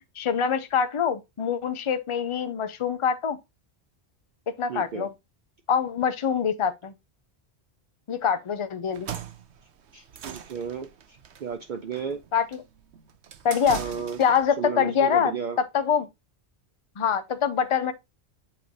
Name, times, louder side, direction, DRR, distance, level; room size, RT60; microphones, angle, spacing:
voice 1, 0.2-3.4 4.5-5.1 5.7-6.9 8.1-9.1 12.3-12.6 13.4-13.8 14.2-15.3 15.6-16.1 17.0-17.9, left 7 dB, 35° left, 0.6 m, -24 dB
voice 2, 4.7-5.1 9.9-10.9 11.4-12.2 13.7-14.2 14.6-15.6, right 7 dB, 55° right, 0.6 m, -33 dB
sound 1, 8.8-14.5, right 8 dB, 75° right, 1.0 m, -40 dB
7.8 x 3.2 x 3.9 m
omnidirectional pair, 1.1 m